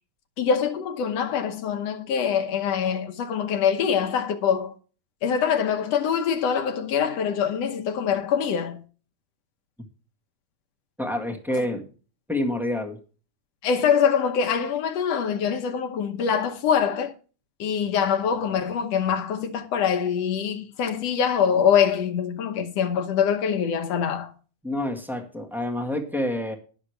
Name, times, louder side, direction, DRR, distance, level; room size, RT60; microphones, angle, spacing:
voice 1, 0.4-4.7 5.2-8.8 13.6-17.1 17.6-24.3, left 7 dB, 65° left, 1.9 m, -24 dB
voice 2, 11.0-11.8 12.3-13.0 24.6-26.5, left 1 dB, ahead, 0.5 m, -27 dB
19.5 x 6.6 x 3.4 m
omnidirectional pair, 3.6 m